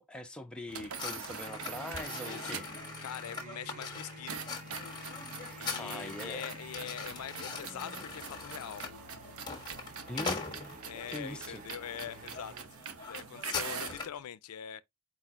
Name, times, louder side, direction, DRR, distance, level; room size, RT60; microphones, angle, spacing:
voice 1, 0.0-2.7 5.8-6.4 10.1-10.4 11.1-11.6, left 1 dB, 5° left, 0.5 m, -42 dB
sound 1, 0.7-2.9 4.3-14.1, right 6 dB, 75° right, 0.7 m, -44 dB
sound 2, 1.0-11.1 11.7-11.9 12.3-12.5 12.7-14.2, left 4 dB, 20° left, 1.3 m, -42 dB
sound 3, 1.4-12.7, right 2 dB, 35° right, 0.8 m, -50 dB
voice 2, 3.0-4.5 5.6-8.8 10.9-12.5 13.0-14.8, left 10 dB, 85° left, 0.4 m, -43 dB
4.6 x 4.2 x 2.4 m
head